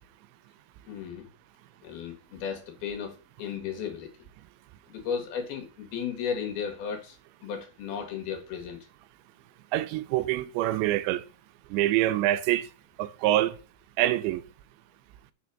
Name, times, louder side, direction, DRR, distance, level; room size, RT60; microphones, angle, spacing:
voice 1, 0.9-1.3 1.8-4.1 4.9-7.2 7.4-8.8, left 7 dB, 65° left, 3.3 m, -34 dB
voice 2, 9.7-11.2 11.7-12.7 13.0-13.5 14.0-14.4, right 14 dB, 85° right, 2.8 m, -25 dB
6.8 x 6.2 x 7.2 m
omnidirectional pair, 5.2 m